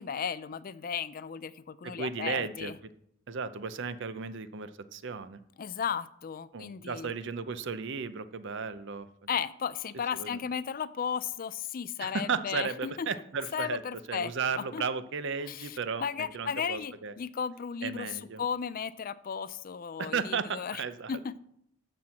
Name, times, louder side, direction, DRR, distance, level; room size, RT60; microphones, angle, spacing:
voice 1, 0.0-2.8 5.6-7.1 9.3-13.1 13.5-14.8 15.5-20.8 21.1-21.4, left 7 dB, 40° left, 16 dB, 0.4 m, -35 dB
voice 2, 1.8-2.7 3.3-5.4 6.5-9.1 10.1-10.4 12.0-13.8 14.1-16.0 16.3-17.1 17.8-18.4 20.0-21.1, right 5 dB, 55° right, 13 dB, 0.6 m, -34 dB
13.0 x 4.4 x 7.6 m, 0.72 s
head